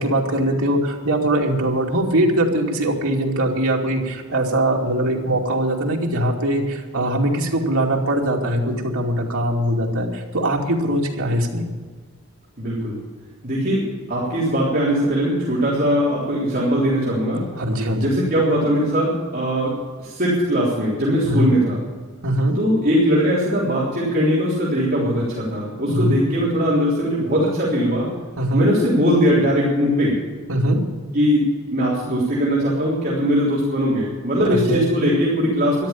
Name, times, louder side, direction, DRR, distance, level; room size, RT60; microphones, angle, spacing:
voice 1, 0.0-11.7 17.6-18.2 21.2-21.6 22.2-22.6 25.9-26.2 28.4-28.7 30.5-30.8 34.5-34.9, right 1 dB, 80° right, 0 dB, 2.6 m, -21 dB
voice 2, 12.6-13.0 13.4-17.4 18.0-19.7 20.0-21.8 22.6-28.1 28.5-30.2 31.1-35.9, equal, 45° right, -8 dB, 3.6 m, -20 dB
13.5 x 11.5 x 7.2 m, 1.5 s
head